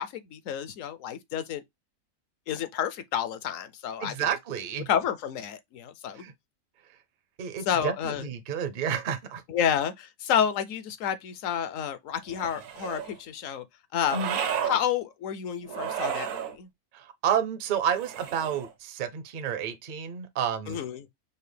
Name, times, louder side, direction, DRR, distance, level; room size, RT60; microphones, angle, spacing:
voice 1, 0.0-1.6 2.5-4.3 4.9-6.3 7.7-8.3 9.5-13.6 13.9-14.2 14.6-16.7 20.7-21.1, left 9 dB, 70° left, 1.0 m, -30 dB
voice 2, 4.0-4.9 6.2-6.3 7.4-9.4 14.1-14.4 16.9-20.8, right 8 dB, 50° right, 0.6 m, -30 dB
sound 1, 12.3-13.1 14.0-14.8 15.7-16.5 17.9-18.7, right 8 dB, 70° right, 1.1 m, -32 dB
5.4 x 2.1 x 3.3 m
omnidirectional pair, 1.5 m